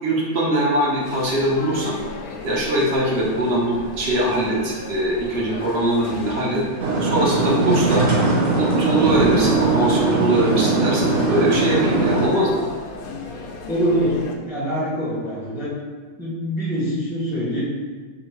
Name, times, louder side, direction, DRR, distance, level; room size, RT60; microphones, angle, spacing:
voice 1, 0.0-2.0 2.4-6.6 7.0-8.0 8.5-12.6, right 1 dB, 55° right, -3 dB, 0.9 m, -21 dB
sound 1, 0.7-14.3, left 3 dB, 90° left, 1.1 m, -35 dB
sound 2, 6.8-12.3, right 3 dB, 85° right, 1.3 m, -20 dB
voice 2, 13.7-14.2 14.5-15.7 16.2-17.6, equal, ahead, -7 dB, 0.6 m, -24 dB
3.0 x 2.7 x 4.5 m, 1.4 s
omnidirectional pair, 1.5 m